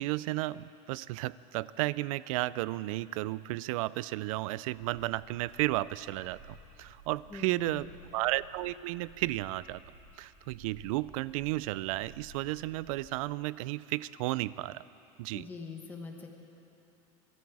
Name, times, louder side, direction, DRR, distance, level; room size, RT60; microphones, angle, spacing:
voice 1, 0.0-9.8 10.2-14.8 15.2-15.5, right 18 dB, 85° right, 19 dB, 0.4 m, -33 dB
sound 1, 6.0-13.2, right 2 dB, 40° right, 3.5 m, -55 dB
voice 2, 7.3-7.9 15.3-16.3, left 4 dB, 10° left, 2 dB, 1.2 m, -43 dB
24.0 x 12.0 x 4.8 m, 2.8 s
cardioid pair, 175°, 17 cm